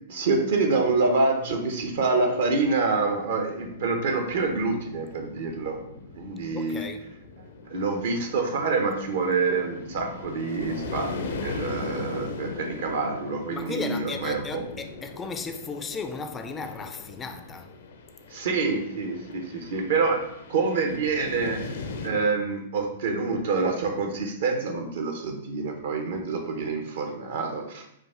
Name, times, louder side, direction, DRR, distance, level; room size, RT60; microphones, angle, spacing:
voice 1, 0.1-5.8 6.2-6.9 7.7-14.6 18.3-20.2 20.5-21.6 22.0-27.9, right 4 dB, 65° right, 0.8 m, -26 dB
sound 1, 2.1-22.1, left 3 dB, 70° left, 0.5 m, -39 dB
voice 2, 6.5-7.1 13.5-17.7, left 4 dB, 20° left, 0.4 m, -35 dB
4.8 x 2.4 x 3.6 m
hypercardioid pair, 110°, 0 cm